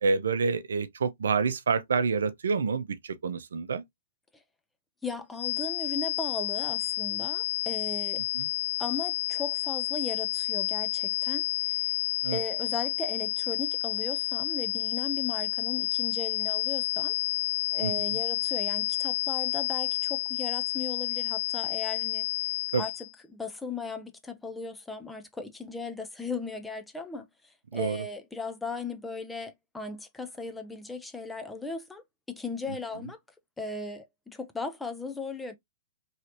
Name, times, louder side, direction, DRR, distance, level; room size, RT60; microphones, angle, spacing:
voice 1, 0.0-3.8 8.3-8.5 12.2-12.4 17.8-18.2 22.7-22.8 27.7-28.0, right 5 dB, 80° right, 0.6 m, -28 dB
voice 2, 5.0-8.2 8.8-11.8 12.3-17.1 17.7-22.3 22.8-33.2 33.6-35.6, left 3 dB, 5° left, 0.6 m, -37 dB
sound 1, 5.4-23.1, left 17 dB, 85° left, 0.7 m, -30 dB
3.2 x 2.8 x 2.9 m
hypercardioid pair, 130°, 0 cm